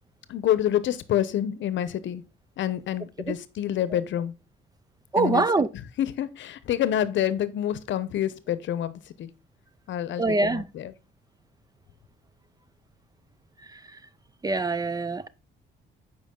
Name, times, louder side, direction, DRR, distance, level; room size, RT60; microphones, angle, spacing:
voice 1, 0.3-2.2 2.6-4.3 5.2-5.4 5.7-9.3 9.9-10.9, left 11 dB, 70° left, 0.8 m, -27 dB
voice 2, 5.1-5.7 10.2-10.6 14.4-15.3, right 3 dB, 20° right, 0.5 m, -23 dB
8.2 x 5.1 x 3.7 m
cardioid pair, 90°, 20 cm